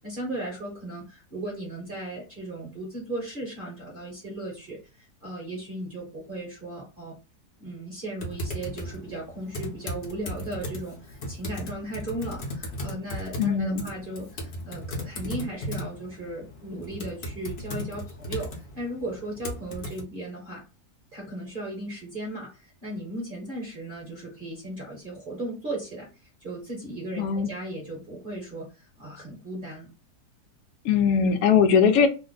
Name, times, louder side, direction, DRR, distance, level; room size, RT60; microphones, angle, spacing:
voice 1, 0.0-7.2 7.6-20.6 21.1-29.9, right 1 dB, 40° right, -2 dB, 0.9 m, -36 dB
Typing, 8.2-20.0, equal, 50° left, 1.0 m, -36 dB
voice 2, 13.4-13.9 27.2-27.5 30.8-32.1, left 6 dB, 75° left, 6 dB, 1.0 m, -20 dB
2.8 x 2.1 x 3.8 m, 0.31 s
omnidirectional pair, 1.6 m